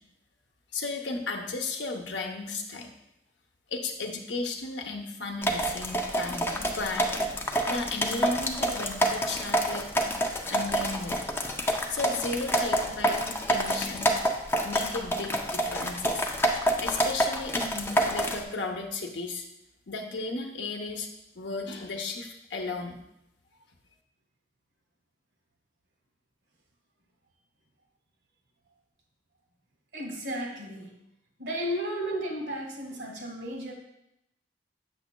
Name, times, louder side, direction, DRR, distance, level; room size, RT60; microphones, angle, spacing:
voice 1, 0.7-2.9 3.7-10.1 10.5-11.2 11.7-14.1 14.6-16.3 16.8-19.4 19.9-21.1 21.4-22.9, left 3 dB, 90° left, 3 dB, 0.7 m, -35 dB
sound 1, 5.4-18.4, equal, 15° left, 0.5 m, -28 dB
voice 2, 29.9-30.9 31.4-33.7, equal, 80° right, 1 dB, 1.7 m, -33 dB
6.9 x 6.7 x 2.2 m, 0.83 s
head